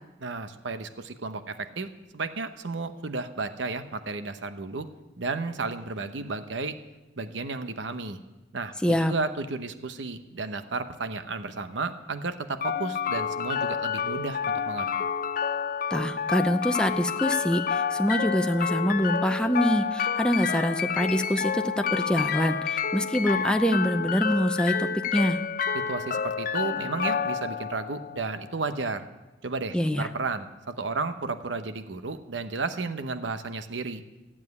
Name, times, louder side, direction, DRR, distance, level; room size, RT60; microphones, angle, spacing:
voice 1, 0.2-1.9 2.1-4.9 5.2-6.8 7.2-8.2 8.5-14.9 25.7-29.1 29.4-34.0, right 3 dB, 85° right, 10 dB, 0.9 m, -33 dB
voice 2, 8.8-9.1 15.9-25.4 29.7-30.1, equal, 5° left, 7 dB, 0.6 m, -25 dB
sound 1, 12.6-28.6, left 6 dB, 50° left, 0.5 m, -29 dB
14.5 x 7.4 x 9.5 m, 1.1 s
head